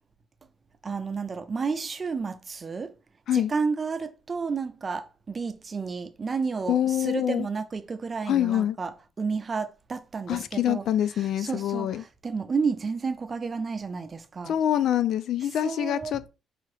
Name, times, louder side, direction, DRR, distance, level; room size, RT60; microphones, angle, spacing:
voice 1, 0.8-2.9 3.3-10.9 11.1-14.6 15.6-16.2, right 5 dB, 35° right, 0.6 m, -31 dB
voice 2, 6.7-7.5 8.3-8.8 10.3-12.0 14.4-16.3, left 11 dB, 75° left, 0.3 m, -25 dB
4.8 x 2.8 x 3.1 m
cardioid pair, 90°, 0 cm